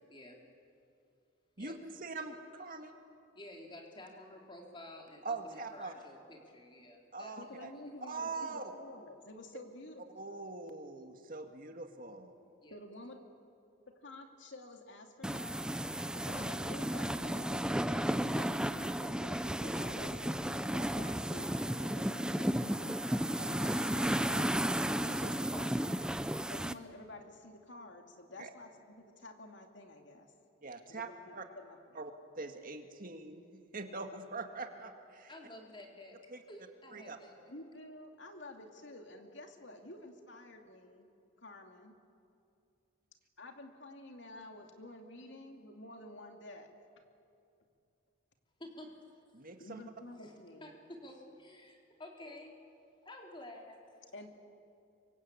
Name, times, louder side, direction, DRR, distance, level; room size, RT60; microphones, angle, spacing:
voice 1, 0.1-0.4 1.6-1.7 3.4-7.3 8.0-8.1 12.6-12.8 35.3-36.2 36.5-37.5 48.6-49.0 50.2-50.3 50.6-52.6 53.0-54.1, left 1 dB, 25° left, 1 dB, 3.7 m, -51 dB
voice 2, 1.6-2.9 5.2-5.9 7.1-7.7 8.0-8.7 10.2-12.4 15.8-16.1 25.0-25.3 28.4-28.5 30.6-31.1 31.3-31.5 32.0-35.3 36.3-36.4 36.9-37.2 49.3-49.8, right 3 dB, 45° right, 5 dB, 1.9 m, -43 dB
voice 3, 7.4-10.3 12.7-13.2 14.0-15.6 16.1-22.9 23.4-24.9 25.2-25.9 26.5-30.3 30.9-32.0 37.5-41.1 41.4-41.9 43.4-46.7 49.6-50.7 54.1-54.3, left 1 dB, 65° left, 4 dB, 2.5 m, -50 dB
sound 1, 15.2-26.7, right 1 dB, 5° right, 0.5 m, -33 dB
26.5 x 24.0 x 8.6 m, 2.5 s
head